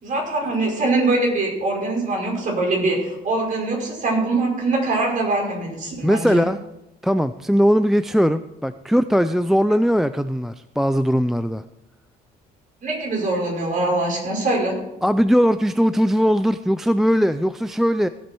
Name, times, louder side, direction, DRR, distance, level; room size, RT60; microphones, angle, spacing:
voice 1, 0.0-6.5 12.8-14.8, right 2 dB, 50° right, -1 dB, 5.6 m, -23 dB
voice 2, 6.0-6.6 7.0-11.6 15.0-18.1, equal, ahead, 12 dB, 0.4 m, -19 dB
17.5 x 8.4 x 4.6 m, 0.92 s
cardioid pair, 110°, 17 cm